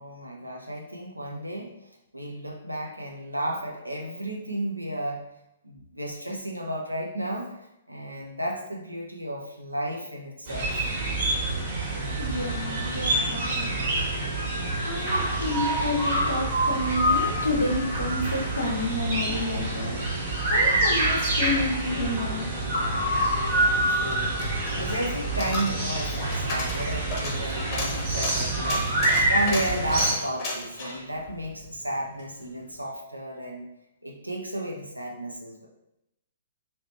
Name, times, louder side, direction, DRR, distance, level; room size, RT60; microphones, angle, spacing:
voice 1, 0.0-1.7 2.1-5.2 5.6-7.6 7.9-10.8 22.9-28.9 29.3-33.7 34.0-35.7, right 1 dB, 85° right, -1 dB, 0.7 m, -33 dB
sound 1, 10.5-30.1, right 1 dB, 45° right, 1.4 m, -26 dB
voice 2, 12.2-13.9 14.8-22.5, left 2 dB, 80° left, -2 dB, 0.9 m, -30 dB
Wind instrument woodwind instrument, 21.9-26.5, equal, 5° left, 0.5 m, -47 dB
Coin (dropping), 23.9-32.3 32.7-32.8, left 1 dB, 30° left, 0.8 m, -35 dB
3.0 x 2.9 x 3.1 m, 0.86 s
figure-of-eight pair, 115°, 0 cm